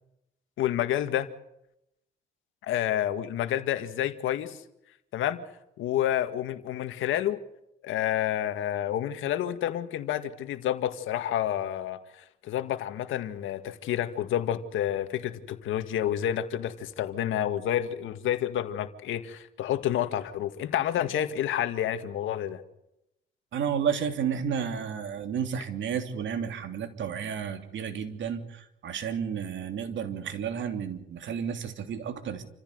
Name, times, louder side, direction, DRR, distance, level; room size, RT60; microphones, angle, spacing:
voice 1, 0.6-1.3 2.6-4.6 5.1-5.4 5.8-7.4 7.8-22.6, left 11 dB, 85° left, 10 dB, 2.0 m, -29 dB
voice 2, 23.5-32.5, right 7 dB, 70° right, 7 dB, 3.0 m, -32 dB
28.5 x 15.0 x 8.0 m, 0.83 s
cardioid pair, 90°, 20 cm